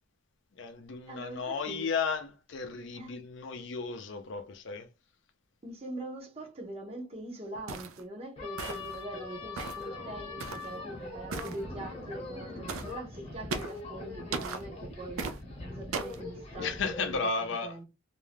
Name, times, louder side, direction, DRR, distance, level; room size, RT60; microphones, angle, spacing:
voice 1, 0.5-4.9 16.6-17.8, left 4 dB, 60° left, 0.5 m, -34 dB
voice 2, 1.1-1.9 3.0-3.1 5.6-15.3 15.7-17.2 17.6-17.8, right 1 dB, 30° right, 0.7 m, -42 dB
sound 1, 7.7-8.0 8.6-9.0 9.6-9.9 10.4-10.7 11.3-11.6 12.7-12.9 13.5-13.8 14.3-14.6 15.2-15.4 15.9-16.2, right 4 dB, 85° right, 0.4 m, -36 dB
sound 2, 8.4-17.2, left 3 dB, 30° left, 0.9 m, -42 dB
2.6 x 2.2 x 3.3 m
head